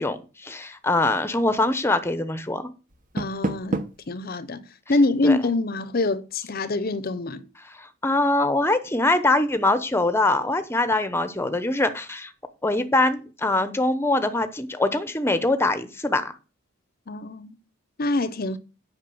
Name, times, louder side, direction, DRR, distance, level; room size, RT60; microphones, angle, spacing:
voice 1, 0.0-2.7 5.2-5.4 7.8-12.3 12.6-16.3, left 2 dB, 10° left, 0.8 m, -23 dB
Door, 2.9-4.1, right 2 dB, 40° right, 0.9 m, -29 dB
voice 2, 3.1-3.8 4.1-4.6 4.9-7.4 17.1-17.6 18.0-18.6, left 2 dB, 45° left, 0.7 m, -25 dB
8.7 x 5.8 x 7.0 m
head